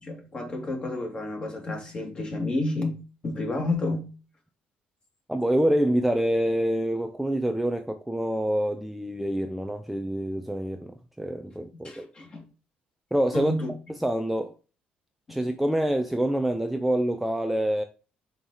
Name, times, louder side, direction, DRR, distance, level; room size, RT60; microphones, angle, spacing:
voice 1, 0.0-4.1 11.7-12.4 13.3-13.7 15.3-15.4, left 2 dB, 30° left, 2.5 m, -30 dB
voice 2, 5.3-12.1 13.1-13.5 14.0-14.6 15.3-17.8, right 1 dB, 5° right, 0.5 m, -26 dB
5.6 x 4.6 x 4.0 m
cardioid pair, 105°, 3 cm